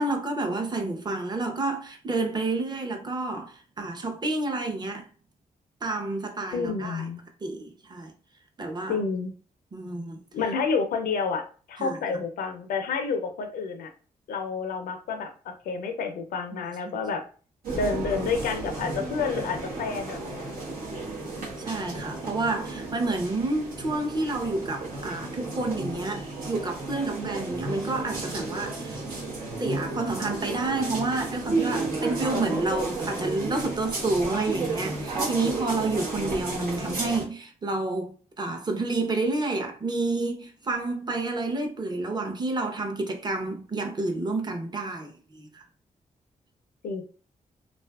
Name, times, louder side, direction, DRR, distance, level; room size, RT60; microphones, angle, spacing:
voice 1, 0.0-5.1 5.8-7.0 7.4-8.1 8.6-9.0 9.7-10.2 11.8-12.0 16.5-16.9 21.6-29.0 29.6-45.6, right 2 dB, 30° right, 0.6 m, -29 dB
voice 2, 6.5-7.2 8.9-9.3 10.3-13.9 14.3-17.2 17.7-20.5 46.8-47.0, left 5 dB, 90° left, 0.5 m, -29 dB
sound 1, 17.6-37.2, right 2 dB, 85° right, 0.9 m, -33 dB
2.5 x 2.4 x 2.3 m
cardioid pair, 70°, 14 cm